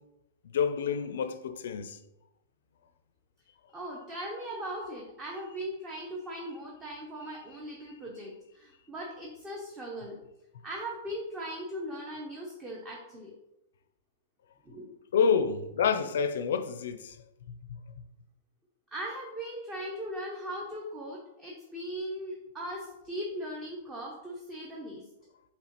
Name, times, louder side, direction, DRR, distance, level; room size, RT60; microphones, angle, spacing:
voice 1, 0.4-2.0 15.1-17.2 17.5-17.8, left 6 dB, 80° left, 0.4 m, -28 dB
voice 2, 3.7-10.2 10.6-13.3 14.7-14.9 18.9-25.1, equal, 15° right, 0.6 m, -39 dB
4.9 x 2.8 x 3.0 m
supercardioid pair, 160°, 0 cm